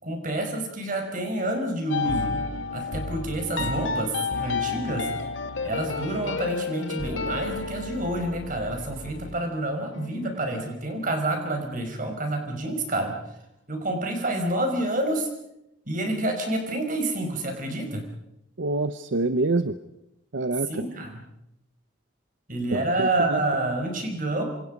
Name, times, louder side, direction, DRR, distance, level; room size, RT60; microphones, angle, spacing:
voice 1, 0.0-2.4 2.7-4.1 4.4-5.1 5.6-13.2 13.7-15.3 15.9-18.0 20.7-21.2 22.5-24.4, right 1 dB, 45° right, 4 dB, 5.4 m, -28 dB
sound 1, 1.9-11.0, left 4 dB, 85° left, 2.1 m, -32 dB
voice 2, 18.6-19.8 20.3-20.7 22.7-23.4, right 2 dB, 70° right, 11 dB, 0.8 m, -26 dB
27.0 x 26.5 x 5.3 m, 0.84 s
head